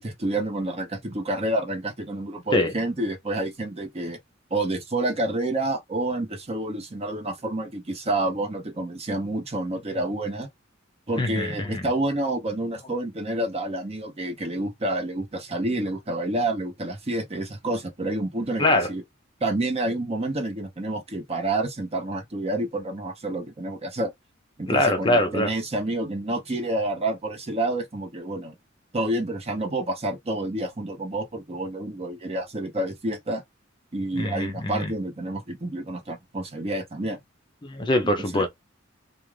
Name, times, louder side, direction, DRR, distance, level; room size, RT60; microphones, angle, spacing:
voice 1, 0.0-4.2 4.5-10.5 11.1-19.0 19.4-24.1 24.6-28.5 28.9-33.4 33.9-37.2 38.2-38.5, right 2 dB, 30° right, 0.7 m, -29 dB
voice 2, 11.2-11.8 18.6-18.9 24.7-25.5 34.1-34.9 37.6-38.5, left 1 dB, 25° left, 0.5 m, -23 dB
2.4 x 2.4 x 3.1 m
head